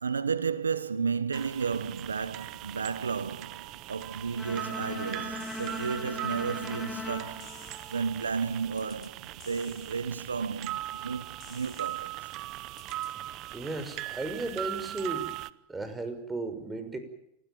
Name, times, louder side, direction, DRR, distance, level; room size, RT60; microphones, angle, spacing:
voice 1, 0.0-7.5 7.9-12.3, right 5 dB, 90° right, 1.0 m, -33 dB
sound 1, 1.3-15.5, right 15 dB, 50° right, 0.9 m, -40 dB
Bowed string instrument, 4.4-8.5, left 2 dB, 15° left, 4.4 m, -40 dB
sound 2, 5.4-6.0 7.4-8.0 8.8-9.1 9.4-10.0 11.4-12.0 12.8-13.1, left 12 dB, 40° left, 3.5 m, -53 dB
voice 2, 13.5-15.3 15.7-17.0, right 2 dB, 15° right, 5.8 m, -35 dB
28.5 x 16.5 x 9.4 m
hypercardioid pair, 95°, 0 cm